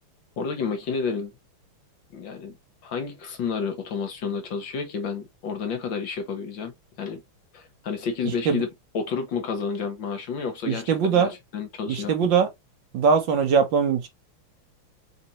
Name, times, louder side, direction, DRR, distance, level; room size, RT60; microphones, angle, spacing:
voice 1, 0.4-1.3 2.1-2.5 2.8-7.2 7.5-8.7 8.9-12.1, left 5 dB, 65° left, 1.6 m, -30 dB
voice 2, 10.7-11.3 11.9-12.5 12.9-14.1, right 6 dB, 60° right, 1.6 m, -21 dB
4.5 x 4.2 x 2.9 m
omnidirectional pair, 2.4 m